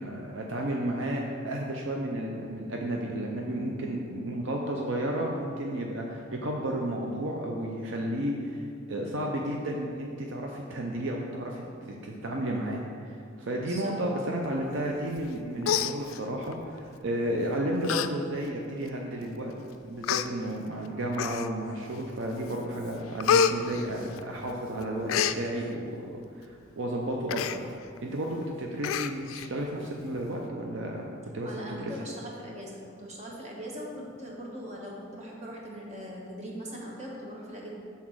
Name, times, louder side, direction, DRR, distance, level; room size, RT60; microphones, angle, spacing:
voice 1, 0.0-19.5 19.8-27.7 28.0-31.1 31.3-31.9, right 1 dB, 65° right, 0 dB, 0.6 m, -32 dB
Human voice, 15.2-15.3 15.6-16.5 17.3-17.4 17.8-18.1 18.5-18.6 19.4-19.5 20.0-20.3 21.1-21.7 22.2-22.5 22.8-24.5 24.8-25.4 27.3-27.6 28.0-28.1 28.3-28.5 28.8-29.5 29.8-29.9, left 7 dB, 85° left, 0.3 m, -28 dB
voice 2, 31.4-37.7, equal, 35° right, -3 dB, 1.2 m, -40 dB
6.0 x 4.1 x 6.2 m, 2.4 s
head